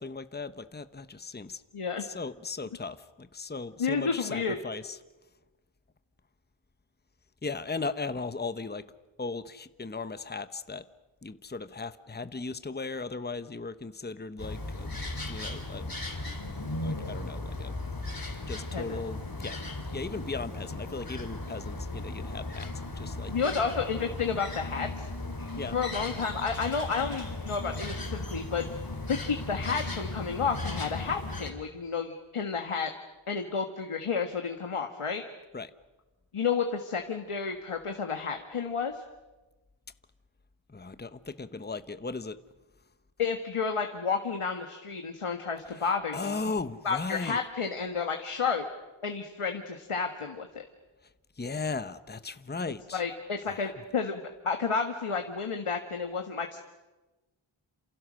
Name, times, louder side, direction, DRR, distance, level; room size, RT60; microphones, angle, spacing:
voice 1, 0.0-1.6 2.0-5.0 7.4-8.9 9.2-10.8 11.2-15.9 16.8-17.7 18.5-23.6 25.6-25.8 35.5-35.7 40.7-42.4 45.8-45.9 46.1-47.4 51.4-53.0 53.5-53.7, left 4 dB, 20° left, 12 dB, 0.9 m, -37 dB
voice 2, 1.7-2.1 3.8-4.5 18.7-19.0 23.3-25.1 25.7-28.6 29.1-32.9 33.3-35.2 36.3-39.0 43.2-46.4 46.8-48.6 49.0-50.6 52.9-56.6, left 5 dB, 90° left, 5 dB, 1.7 m, -31 dB
sound 1, 14.4-31.5, left 2 dB, 45° left, 3.8 m, -36 dB
28.0 x 27.5 x 6.4 m, 1.1 s
wide cardioid pair, 70°, 50 cm